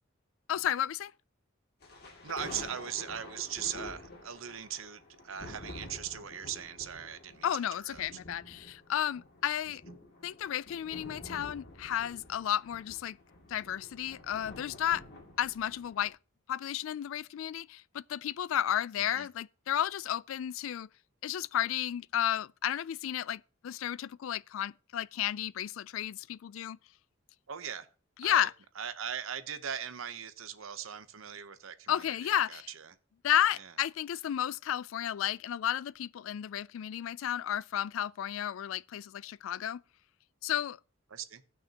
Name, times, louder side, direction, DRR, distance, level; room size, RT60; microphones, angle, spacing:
voice 1, 0.5-1.1 7.4-9.8 10.2-13.2 13.5-15.0 15.4-16.2 16.5-20.9 21.2-26.8 28.2-28.5 31.9-32.7 33.2-39.8 40.4-40.8, left 10 dB, 70° left, 0.3 m, -32 dB
sound 1, 1.8-16.1, left 2 dB, 50° left, 2.4 m, -49 dB
voice 2, 2.2-7.5 7.8-8.0 19.1-19.3 27.5-27.9 28.2-28.5 28.8-32.9 33.6-33.7 41.1-41.4, right 8 dB, 75° right, 0.8 m, -40 dB
17.0 x 6.0 x 2.9 m
head